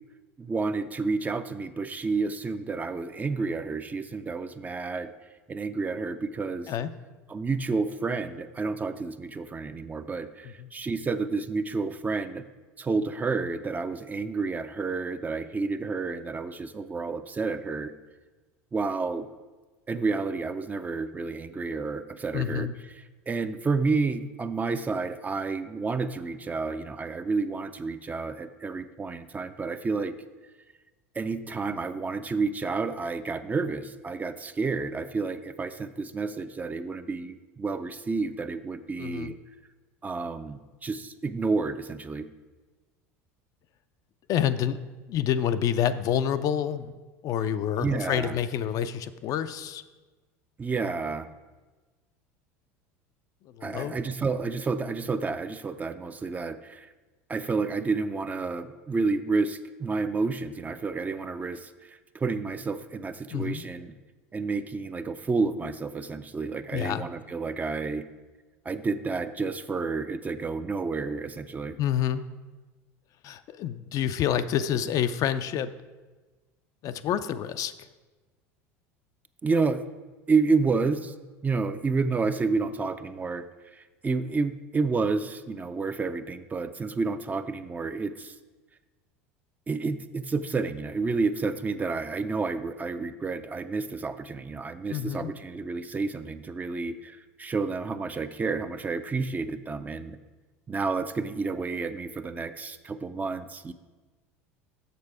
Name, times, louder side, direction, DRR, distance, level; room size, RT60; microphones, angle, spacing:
voice 1, 0.4-5.1 5.5-6.7 7.3-12.5 12.8-17.9 18.7-19.3 19.9-30.1 31.2-39.3 40.0-42.3 47.8-48.4 50.6-51.3 53.6-56.9 57.3-63.9 64.3-68.0 68.7-71.8 79.4-79.8 80.3-81.1 81.4-83.5 83.7-88.3 89.7-100.2 100.7-103.7, right 4 dB, 20° right, 11 dB, 0.4 m, -30 dB
voice 2, 22.3-22.7 39.0-39.3 44.3-44.8 45.1-47.0 47.2-49.8 53.6-54.0 63.3-63.6 66.7-67.0 71.8-72.2 73.2-75.7 76.8-77.7 94.9-95.3, left 9 dB, 50° left, 11 dB, 0.4 m, -28 dB
6.7 x 6.6 x 4.7 m, 1.3 s
hypercardioid pair, 90°, 8 cm